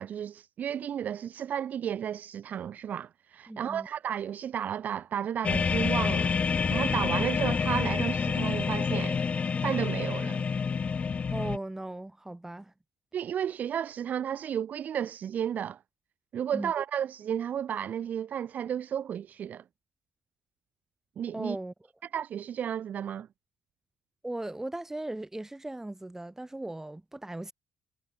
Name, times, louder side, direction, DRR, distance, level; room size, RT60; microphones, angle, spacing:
voice 1, 0.0-9.2 9.6-10.4 13.1-15.8 16.3-19.6 21.2-21.6 22.1-23.3, right 9 dB, 60° right, 0.6 m, -33 dB
voice 2, 3.5-3.9 11.3-12.7 16.5-16.7 21.3-21.7 24.2-27.5, right 1 dB, 15° right, 1.6 m, -37 dB
sound 1, 5.4-11.6, left 5 dB, 45° left, 0.6 m, -28 dB
hypercardioid pair, 45°, 3 cm